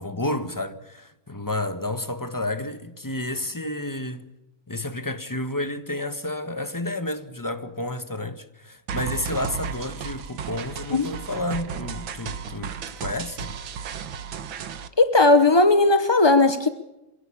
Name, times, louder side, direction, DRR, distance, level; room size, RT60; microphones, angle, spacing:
voice 1, 0.0-4.2 4.7-12.7 13.0-13.5, left 1 dB, 10° left, 1.2 m, -30 dB
sound 1, 8.9-14.9, right 7 dB, 80° right, 2.0 m, -34 dB
voice 2, 15.0-16.7, left 2 dB, 30° left, 0.4 m, -17 dB
27.5 x 17.0 x 8.6 m
omnidirectional pair, 2.1 m